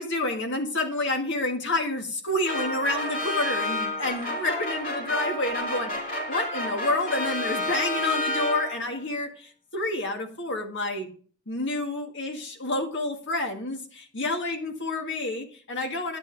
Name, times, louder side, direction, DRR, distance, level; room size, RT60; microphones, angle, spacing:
voice 1, 0.0-5.9 6.3-11.1 11.5-16.2, left 2 dB, 55° left, 3 dB, 1.8 m, -29 dB
sound 1, 2.4-9.0, left 1 dB, 40° left, 2.5 m, -30 dB
10.5 x 8.4 x 3.4 m, 0.42 s
head